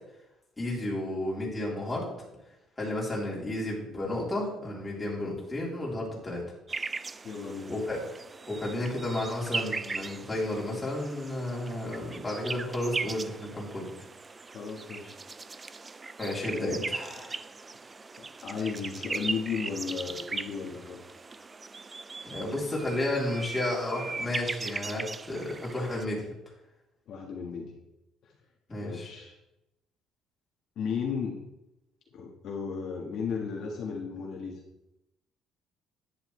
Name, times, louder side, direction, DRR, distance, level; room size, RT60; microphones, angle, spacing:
voice 1, 0.6-2.1 2.8-6.4 7.7-8.0 8.5-13.9 16.2-17.4 22.2-26.3 28.7-29.1, left 1 dB, 10° left, -5 dB, 3.4 m, -32 dB
sound 1, 6.7-26.0, right 4 dB, 20° right, 0.4 m, -39 dB
voice 2, 7.2-7.7 14.4-15.2 16.5-16.8 18.4-21.0 27.1-27.8 28.2-28.3 28.8-29.4 30.7-31.4 32.1-34.6, left 6 dB, 55° left, -1 dB, 1.5 m, -35 dB
11.0 x 10.0 x 3.3 m, 0.90 s
cardioid pair, 150°, 0 cm